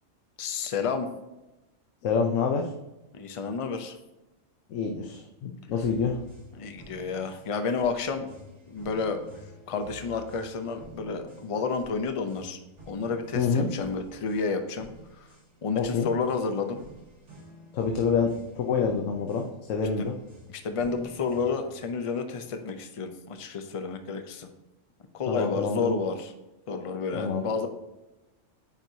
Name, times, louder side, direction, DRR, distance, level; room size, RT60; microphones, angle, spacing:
voice 1, 0.4-1.1 3.1-4.0 6.6-8.3 8.7-9.2 9.7-12.6 12.9-14.9 15.2-15.3 15.6-16.8 20.0-20.1 20.5-24.5 25.1-26.3 26.7-27.7, left 5 dB, 40° left, 7 dB, 0.5 m, -30 dB
voice 2, 2.0-2.7 4.7-6.2 13.4-13.7 15.7-16.1 17.7-20.2 25.3-26.0 27.1-27.5, left 5 dB, 85° left, 3 dB, 1.1 m, -27 dB
sound 1, 5.8-21.8, right 1 dB, 65° right, 2.2 m, -50 dB
9.0 x 4.5 x 2.7 m, 1.0 s
omnidirectional pair, 1.3 m